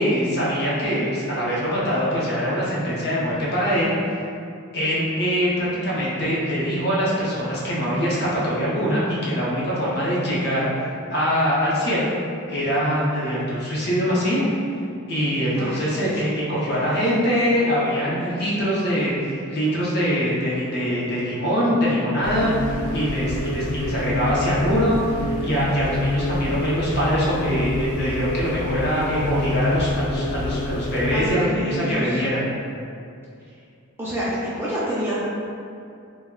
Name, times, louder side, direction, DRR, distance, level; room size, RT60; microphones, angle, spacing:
voice 1, 0.0-4.2 4.7-10.7 11.1-12.1 12.5-14.4 15.1-32.5, equal, 50° left, -7 dB, 0.6 m, -23 dB
voice 2, 15.4-16.2 16.7-16.9 18.6-18.8 24.1-24.7 31.1-32.2 34.0-35.2, equal, 10° right, -9 dB, 0.3 m, -29 dB
sound 1, 22.2-31.4, left 2 dB, 85° left, 0.3 m, -27 dB
2.2 x 2.1 x 3.6 m, 2.5 s
head